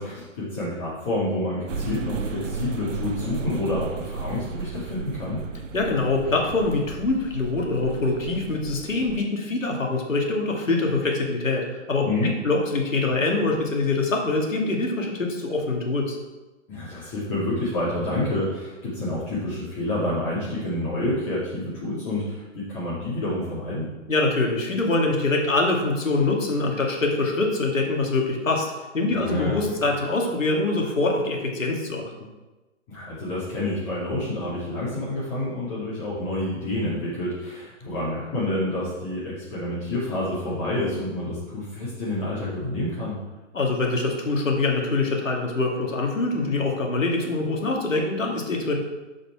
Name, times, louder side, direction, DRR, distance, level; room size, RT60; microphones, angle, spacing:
voice 1, 0.0-5.4 12.0-12.3 16.7-23.9 29.1-29.5 32.9-43.2, left 1 dB, 25° left, -10 dB, 2.6 m, -28 dB
sound 1, 1.7-9.2, right 4 dB, 75° right, 0.7 m, -34 dB
voice 2, 5.7-16.2 24.1-28.7 28.9-32.1 43.5-48.7, left 3 dB, 85° left, 0 dB, 2.2 m, -24 dB
8.8 x 5.2 x 4.7 m, 1.1 s
hypercardioid pair, 145°, 38 cm